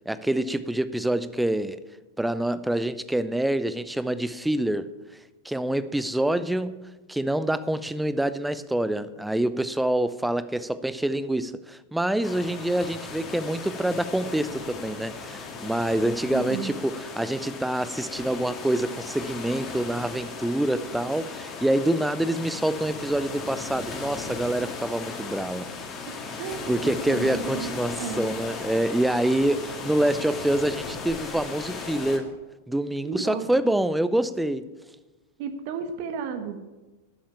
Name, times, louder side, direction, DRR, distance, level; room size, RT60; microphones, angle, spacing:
voice 1, 0.1-1.8 2.2-4.9 5.4-6.8 7.1-25.7 26.7-32.3 32.7-34.7, right 1 dB, 5° right, 14 dB, 0.6 m, -26 dB
sound 1, 12.2-32.2, left 4 dB, 25° left, 2.3 m, -37 dB
voice 2, 16.3-16.7 26.1-28.3 33.0-33.5 35.4-36.7, right 6 dB, 45° right, 8 dB, 1.2 m, -33 dB
12.0 x 7.3 x 8.8 m, 1.2 s
figure-of-eight pair, 90°, 0 cm